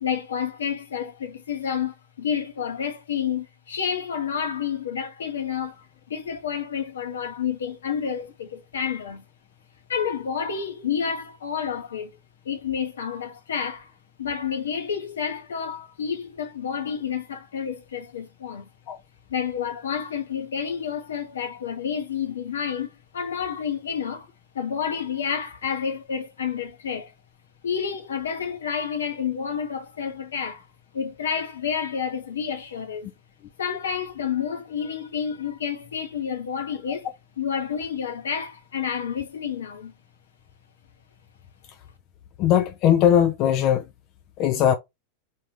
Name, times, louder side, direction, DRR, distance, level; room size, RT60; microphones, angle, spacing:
voice 1, 0.0-9.2 9.9-12.1 12.4-13.9 14.2-18.7 19.3-24.3 24.5-27.1 27.6-30.6 30.9-33.1 33.6-37.1 37.4-39.9, left 7 dB, 65° left, 0.9 m, -29 dB
voice 2, 42.4-43.8 44.4-44.7, left 10 dB, 40° left, 0.4 m, -19 dB
3.5 x 2.6 x 3.2 m
figure-of-eight pair, 90°, 0 cm